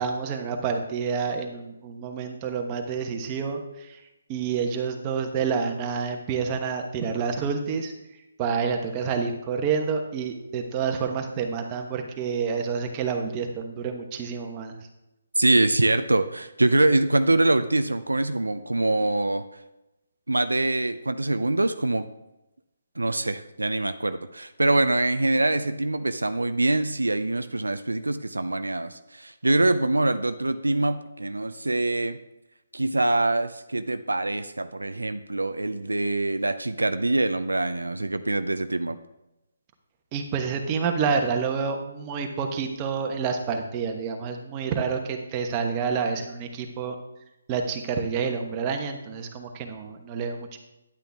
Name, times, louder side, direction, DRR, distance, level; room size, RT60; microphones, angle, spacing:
voice 1, 0.0-4.0 4.3-7.9 8.4-14.7 40.1-47.0 47.5-50.6, right 6 dB, 25° right, 3 dB, 1.2 m, -28 dB
voice 2, 15.4-19.4 20.3-22.1 23.0-32.2 32.7-39.0, right 2 dB, 90° right, 11 dB, 0.5 m, -24 dB
10.0 x 9.1 x 3.5 m, 0.94 s
figure-of-eight pair, 145°, 0 cm